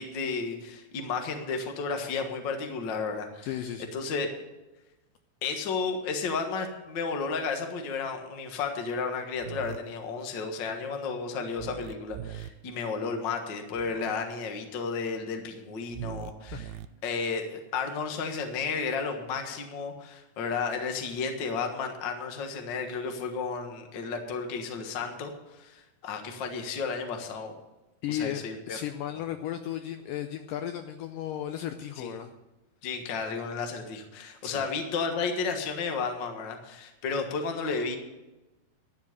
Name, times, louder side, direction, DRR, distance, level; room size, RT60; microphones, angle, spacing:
voice 1, 0.0-3.5 3.9-4.4 5.4-16.7 17.0-27.5 28.1-28.8 32.0-32.1 32.8-38.0, left 5 dB, 75° left, 4 dB, 1.0 m, -33 dB
voice 2, 3.4-3.9 16.5-16.6 28.0-32.3 34.4-34.7, left 10 dB, 90° left, 7 dB, 1.9 m, -35 dB
sound 1, 9.4-9.8 11.6-12.5 13.7-14.1 15.9-16.9, right 13 dB, 85° right, 2.5 m, -40 dB
12.0 x 7.5 x 8.1 m, 1.0 s
omnidirectional pair, 4.5 m